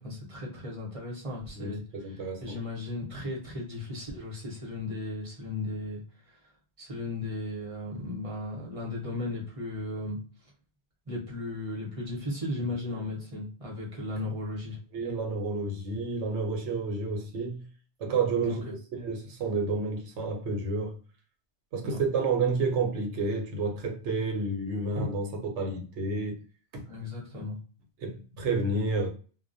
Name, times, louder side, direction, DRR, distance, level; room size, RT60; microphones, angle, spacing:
voice 1, 0.0-6.4 6.8-10.2 11.1-14.8 18.4-18.7 21.8-22.0 26.9-27.6, left 2 dB, 35° right, 0.8 m, -36 dB
voice 2, 1.5-2.6 14.9-17.6 18.0-21.0 21.7-26.4 26.7-26.8 28.0-29.1, right 3 dB, 75° right, 1.0 m, -30 dB
2.2 x 2.1 x 2.6 m
omnidirectional pair, 1.2 m